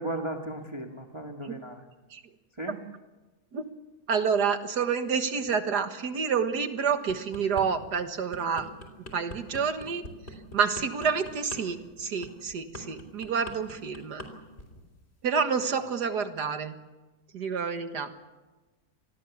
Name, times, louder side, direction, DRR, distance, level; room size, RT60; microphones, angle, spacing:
voice 1, 0.0-1.8 2.5-2.8, right 2 dB, 20° right, 2 dB, 1.7 m, -35 dB
voice 2, 4.1-8.7 9.1-10.0 10.5-14.3 15.2-16.7 17.3-18.1, right 6 dB, 85° right, 8 dB, 2.2 m, -28 dB
sound 1, 6.9-7.7 8.1-14.3 14.6-14.9, left 1 dB, 40° left, 3.7 m, -42 dB
27.0 x 20.0 x 7.2 m, 1.2 s
omnidirectional pair, 1.7 m